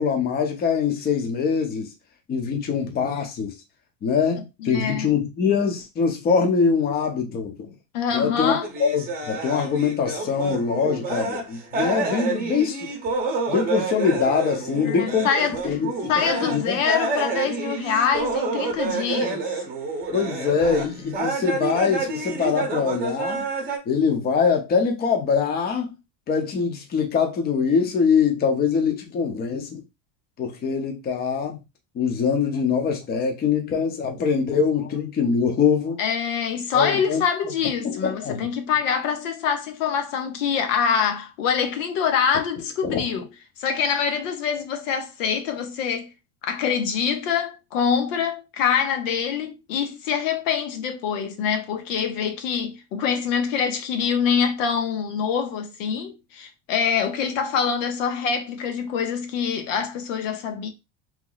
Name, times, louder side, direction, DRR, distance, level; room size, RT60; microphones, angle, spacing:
voice 1, 0.0-1.9 2.3-3.5 4.0-7.7 8.1-12.9 13.5-15.3 15.6-16.1 16.4-16.8 20.1-23.5 23.9-25.9 26.3-29.8 30.4-31.6 31.9-36.0 36.7-37.2 37.8-38.4 42.8-43.0, left 6 dB, 25° left, 0.7 m, -23 dB
voice 2, 4.6-5.1 7.9-8.7 14.8-15.6 16.1-19.5 36.0-43.3 43.6-46.1 46.4-60.7, left 7 dB, 90° left, 0.9 m, -25 dB
sound 1, 8.6-11.5 11.7-20.9 21.1-23.8, right 3 dB, 25° right, 0.8 m, -28 dB
3.0 x 2.1 x 3.8 m
supercardioid pair, 140°, 36 cm